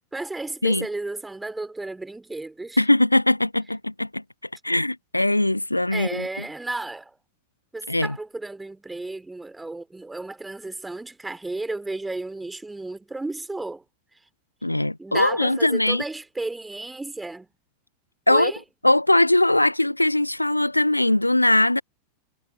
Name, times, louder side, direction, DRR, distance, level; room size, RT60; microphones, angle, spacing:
voice 1, 0.1-2.8 5.9-7.1 7.7-13.8 15.0-17.5 18.3-18.6, right 2 dB, 10° right, 3.5 m, -33 dB
voice 2, 2.8-4.2 4.6-6.3 7.9-8.2 14.6-16.0 18.3-18.5 18.8-21.8, left 1 dB, 85° left, 0.7 m, -20 dB
figure-of-eight pair, 90°, 0 cm